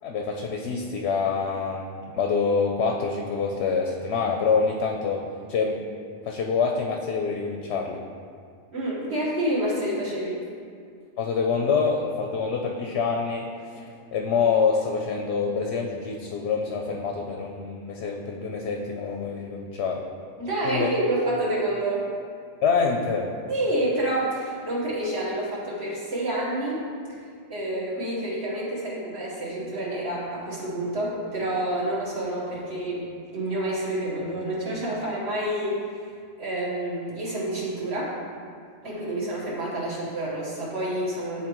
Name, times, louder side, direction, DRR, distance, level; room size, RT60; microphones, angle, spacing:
voice 1, 0.0-1.9 2.1-5.8 6.2-8.0 11.2-13.4 13.7-20.0 20.6-20.9 22.6-23.3, left 5 dB, 65° left, 1 dB, 0.8 m, -26 dB
voice 2, 8.7-10.4 20.4-22.0 23.5-26.8 27.5-36.1 36.4-38.1 38.8-41.5, right 1 dB, 60° right, -8 dB, 1.6 m, -28 dB
10.0 x 3.9 x 3.0 m, 2.2 s
omnidirectional pair, 1.3 m